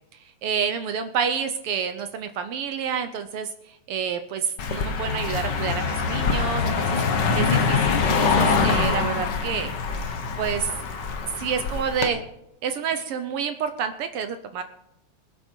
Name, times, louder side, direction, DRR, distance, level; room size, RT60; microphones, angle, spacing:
voice 1, 0.4-9.7 10.0-10.8 11.3-12.2 12.6-14.6, right 7 dB, 80° right, 8 dB, 1.3 m, -29 dB
Car passing by, 4.6-12.1, left 5 dB, 55° left, 1.3 m, -24 dB
21.5 x 8.2 x 4.5 m, 0.82 s
omnidirectional pair, 3.5 m